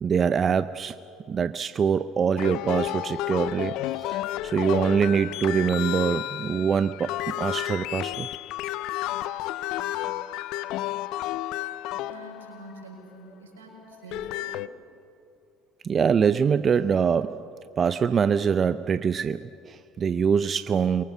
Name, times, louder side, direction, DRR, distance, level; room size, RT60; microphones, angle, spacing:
voice 1, 0.0-1.0 1.3-3.8 4.1-8.3 15.8-17.5 17.8-21.0, right 7 dB, 40° right, 13 dB, 0.6 m, -24 dB
sound 1, 2.4-12.8 13.9-14.7, left 14 dB, 65° left, 0.6 m, -31 dB
voice 2, 12.0-14.6, right 2 dB, 85° right, 0 dB, 6.1 m, -46 dB
28.0 x 23.5 x 6.3 m, 2.6 s
hypercardioid pair, 70°, 0 cm